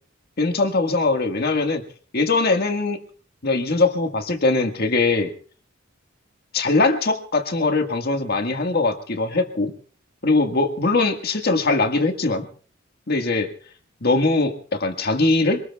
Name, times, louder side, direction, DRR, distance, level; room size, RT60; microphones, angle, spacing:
voice 1, 0.4-1.8 2.1-3.0 3.4-5.3 6.5-9.7 10.2-12.5 13.1-13.5 14.0-15.6, left 3 dB, 50° left, 5 dB, 1.7 m, -21 dB
27.0 x 19.5 x 2.4 m, 0.43 s
head